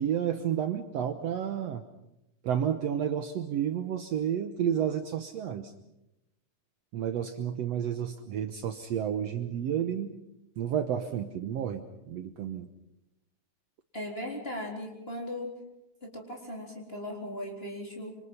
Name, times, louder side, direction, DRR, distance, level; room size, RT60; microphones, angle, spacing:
voice 1, 0.0-1.8 2.4-5.7 6.9-10.1 10.6-12.7, right 9 dB, 65° right, 8 dB, 2.0 m, -31 dB
voice 2, 13.9-15.6 16.0-18.2, left 1 dB, 20° left, 1 dB, 4.2 m, -38 dB
26.5 x 25.5 x 5.5 m, 0.87 s
omnidirectional pair, 3.5 m